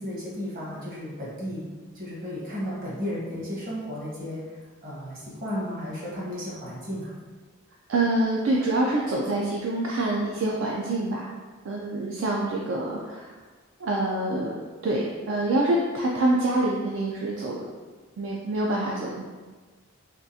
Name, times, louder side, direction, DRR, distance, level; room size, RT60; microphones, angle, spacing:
voice 1, 0.0-1.7 1.9-7.1, equal, 45° right, -6 dB, 1.1 m, -34 dB
voice 2, 7.9-11.3 11.6-13.3 13.8-14.6 14.8-17.7 18.2-19.2, right 2 dB, 65° right, -3 dB, 0.3 m, -26 dB
3.6 x 2.4 x 2.7 m, 1.4 s
head